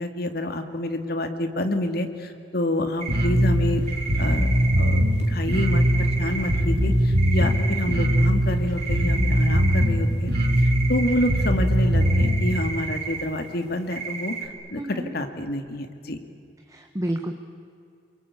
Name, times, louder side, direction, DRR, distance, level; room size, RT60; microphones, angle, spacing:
voice 1, 0.0-3.8 4.2-4.5 4.8-10.3 10.6-16.2, left 1 dB, 60° left, 7 dB, 2.3 m, -28 dB
sound 1, 3.0-3.3 3.9-6.7 7.0-8.4 8.8-13.3 13.7-14.5, right 5 dB, 40° right, 3.4 m, -33 dB
Bass guitar, 3.1-12.5, equal, 60° right, 3.5 m, -21 dB
voice 2, 14.8-15.1 16.7-17.3, right 1 dB, 20° right, 4 dB, 1.4 m, -29 dB
29.0 x 22.5 x 8.7 m, 2.4 s
head